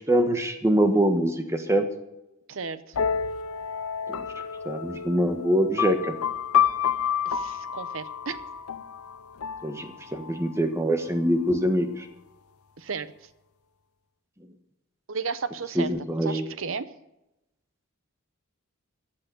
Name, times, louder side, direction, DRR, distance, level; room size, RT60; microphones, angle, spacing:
voice 1, 0.0-1.8 4.1-4.2 4.6-6.1 9.6-12.1 15.7-16.5, right 1 dB, 15° right, 6 dB, 1.3 m, -24 dB
voice 2, 2.5-2.8 7.3-8.4 12.8-13.1 15.1-15.9 16.2-16.9, right 5 dB, 65° right, 14 dB, 0.8 m, -33 dB
sound 1, 2.9-10.5, left 8 dB, 90° left, 0.6 m, -29 dB
15.0 x 8.7 x 6.8 m, 0.91 s
head